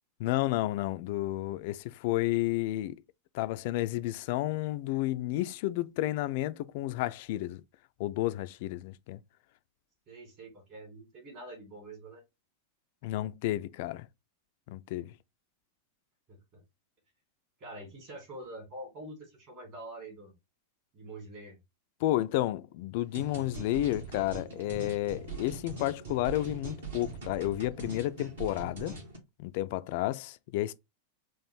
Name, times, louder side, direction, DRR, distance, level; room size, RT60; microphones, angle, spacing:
voice 1, 0.2-3.0 3.3-7.6 8.0-9.2 13.0-14.1 14.7-15.1 22.0-28.9 29.4-30.7, left 15 dB, 50° left, 0.3 m, -31 dB
voice 2, 10.1-12.2 16.3-16.6 17.6-20.3 20.9-21.6, right 1 dB, 40° right, 2.3 m, -45 dB
sound 1, 23.1-29.2, right 3 dB, 65° right, 1.7 m, -42 dB
4.5 x 2.5 x 3.5 m
figure-of-eight pair, 90°, 0 cm